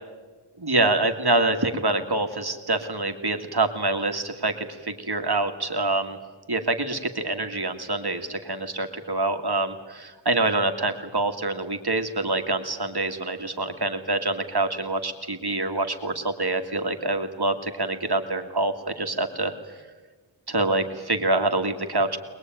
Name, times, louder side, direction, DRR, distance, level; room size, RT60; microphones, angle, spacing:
voice 1, 0.6-6.2 6.5-19.5 20.5-22.2, right 2 dB, 55° right, 5 dB, 2.2 m, -26 dB
23.0 x 21.0 x 9.2 m, 1.4 s
wide cardioid pair, 50°, 48 cm